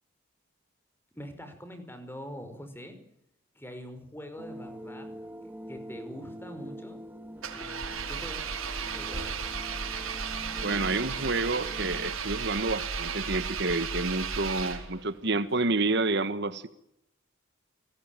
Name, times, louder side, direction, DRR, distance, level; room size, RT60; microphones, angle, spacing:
voice 1, 1.1-3.0 3.5-5.1 5.7-7.0 7.5-9.8, equal, 10° left, 8 dB, 5.2 m, -44 dB
sound 1, 4.4-12.1, equal, 10° right, 1.7 m, -44 dB
Engine, 7.4-15.1, right 6 dB, 85° right, 4.9 m, -34 dB
voice 2, 10.6-16.7, right 3 dB, 55° right, 12 dB, 1.5 m, -29 dB
29.5 x 20.5 x 9.1 m, 0.78 s
head